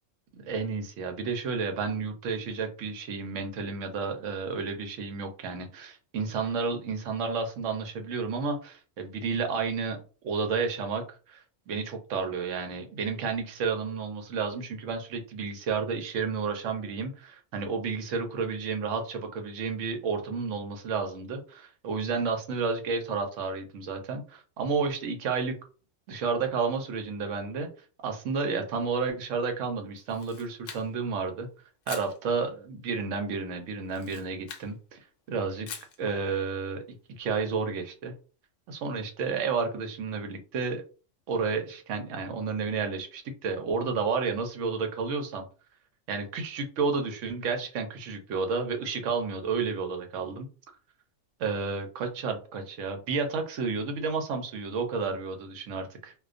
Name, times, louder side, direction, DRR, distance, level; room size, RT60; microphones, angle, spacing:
voice 1, 0.3-10.0 10.2-25.6 26.1-27.7 28.0-31.5 31.9-35.0 35.3-35.7 36.0-36.8 37.1-38.1 38.7-40.8 41.3-45.5 46.1-50.5 51.4-56.1, right 5 dB, 75° right, 6 dB, 0.9 m, -31 dB
Camera, 30.0-31.1 31.8-32.2 33.8-34.7 35.7-36.0, left 7 dB, 75° left, 0.9 m, -43 dB
2.3 x 2.2 x 2.4 m, 0.36 s
omnidirectional pair, 1.3 m